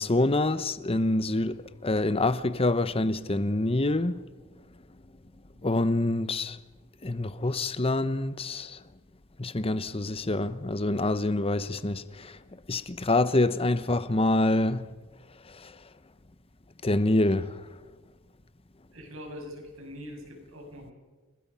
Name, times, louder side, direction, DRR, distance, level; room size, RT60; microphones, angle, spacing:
voice 1, 0.0-1.6 1.8-4.2 5.6-6.6 7.0-8.8 9.4-12.4 12.7-14.9 15.6-15.7 16.8-17.5, left 2 dB, 30° left, 0.9 m, -26 dB
voice 2, 18.9-20.9, equal, 85° right, 6.3 m, -43 dB
29.5 x 20.5 x 5.6 m
head